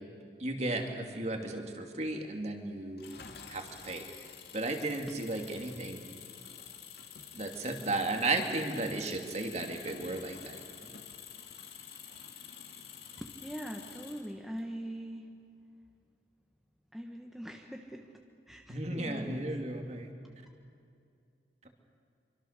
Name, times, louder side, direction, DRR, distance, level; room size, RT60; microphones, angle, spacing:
voice 1, 0.4-3.0 3.5-4.0 4.5-6.0 7.3-10.6 18.7-20.1, right 2 dB, 35° right, 4 dB, 2.5 m, -34 dB
Engine, 3.0-14.6, left 7 dB, 60° left, 2.4 m, -49 dB
voice 2, 13.2-15.3 16.9-18.2 18.5-19.5 20.2-20.4, equal, ahead, 1 dB, 1.3 m, -42 dB
26.0 x 24.5 x 6.7 m, 2.5 s
head